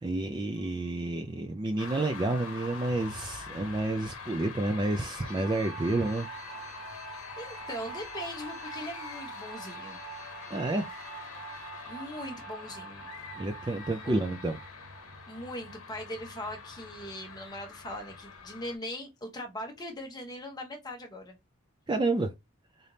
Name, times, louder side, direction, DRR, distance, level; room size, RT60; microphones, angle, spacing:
voice 1, 0.0-6.9 10.5-10.9 13.4-14.6 21.9-22.3, right 2 dB, 20° right, 0.3 m, -30 dB
sound 1, 0.6-18.4, right 8 dB, 70° right, 2.6 m, -48 dB
sound 2, 1.8-18.8, left 5 dB, 80° left, 0.9 m, -44 dB
voice 2, 7.4-10.0 11.9-13.1 14.0-14.1 15.3-21.4, left 1 dB, 20° left, 1.0 m, -40 dB
3.9 x 3.3 x 2.7 m
head